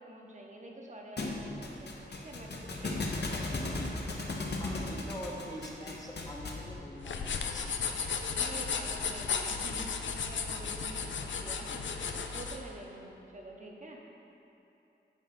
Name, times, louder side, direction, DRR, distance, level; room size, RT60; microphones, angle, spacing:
voice 1, 0.0-3.3 8.3-14.0, right 1 dB, 40° right, -1 dB, 0.9 m, -47 dB
Thump thud, 1.2-6.7, left 2 dB, 65° left, 0.8 m, -36 dB
voice 2, 4.6-7.7, equal, 20° left, -3 dB, 0.7 m, -44 dB
sound 1, 7.0-12.6, left 5 dB, 85° left, 0.4 m, -34 dB
7.6 x 4.3 x 5.2 m, 2.9 s
wide cardioid pair, 95°, 19 cm